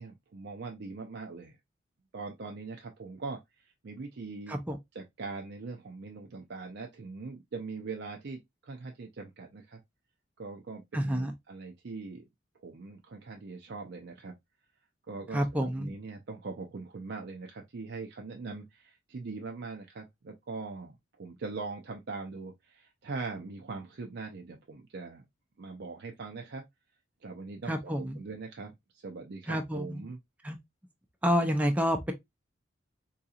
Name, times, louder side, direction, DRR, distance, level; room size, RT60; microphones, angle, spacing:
voice 1, 0.0-1.6 2.1-4.6 4.9-9.8 10.4-12.2 12.6-14.3 15.1-25.2 25.6-26.6 27.2-30.2, right 4 dB, 60° right, 0.5 m, -41 dB
voice 2, 10.9-11.3 15.3-15.9 27.7-28.2 29.5-30.1 30.4-30.6 31.2-32.1, equal, 10° right, 0.4 m, -29 dB
3.8 x 2.8 x 2.3 m
head